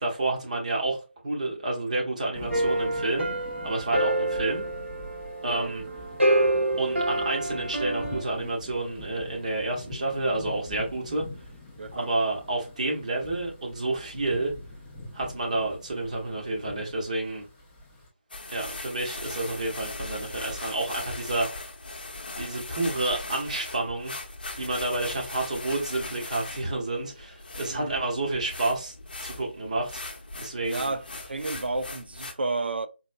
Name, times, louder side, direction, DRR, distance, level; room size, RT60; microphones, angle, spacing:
voice 1, 0.0-3.3 3.6-4.6 5.4-5.8 6.8-11.3 11.9-14.5 15.1-17.4 18.5-21.7 22.4-24.1 24.5-28.9 29.2-30.0 30.4-30.9, right 2 dB, 40° right, 1.0 m, -29 dB
sound 1, 2.3-18.1, left 2 dB, 10° left, 0.4 m, -44 dB
sound 2, 2.5-8.2, right 1 dB, 80° right, 1.0 m, -27 dB
voice 2, 11.8-12.1 27.7-28.0 30.6-32.9, right 3 dB, 60° right, 0.4 m, -32 dB
sound 3, 18.3-32.3, left 2 dB, 50° left, 0.7 m, -39 dB
4.0 x 2.6 x 2.2 m
figure-of-eight pair, 160°, 6 cm